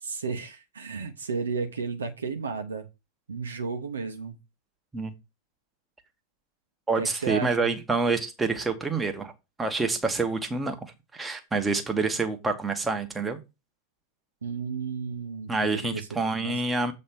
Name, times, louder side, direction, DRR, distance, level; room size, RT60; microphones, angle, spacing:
voice 1, 0.0-2.9 3.3-4.4 7.0-7.7 14.4-16.1 16.4-16.5, right 5 dB, 70° right, 1.1 m, -33 dB
voice 2, 6.9-9.3 9.6-10.8 11.1-13.4 15.5-16.9, right 3 dB, 10° right, 1.3 m, -27 dB
7.7 x 3.3 x 5.9 m
figure-of-eight pair, 90°, 0 cm